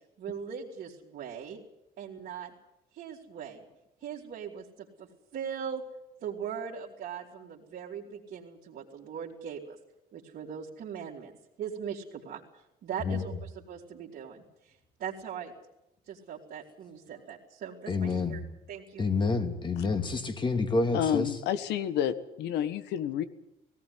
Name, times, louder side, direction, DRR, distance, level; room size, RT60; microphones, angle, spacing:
voice 1, 0.2-1.6 2.0-2.5 2.9-3.6 4.0-5.8 6.2-9.8 10.1-11.3 11.6-12.4 12.8-14.7 15.0-15.5 16.1-18.4 18.7-19.1, right 7 dB, 60° right, -4 dB, 3.0 m, -40 dB
voice 2, 17.9-18.4 19.0-21.3, left 3 dB, 30° left, 6 dB, 2.7 m, -28 dB
voice 3, 20.9-23.2, left 10 dB, 80° left, 13 dB, 1.5 m, -29 dB
18.0 x 17.5 x 9.7 m, 0.87 s
cardioid pair, 110°, 17 cm